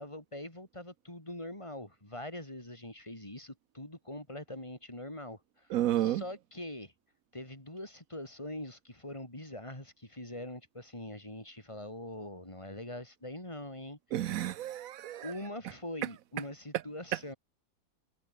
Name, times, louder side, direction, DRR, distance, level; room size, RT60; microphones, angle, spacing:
voice 1, 0.0-6.9 7.3-14.3 15.2-17.3, left 1 dB, 15° left, 5.6 m, -43 dB
voice 2, 5.7-6.2 14.1-15.3, right 13 dB, 80° right, 0.7 m, -31 dB
omnidirectional pair, 2.2 m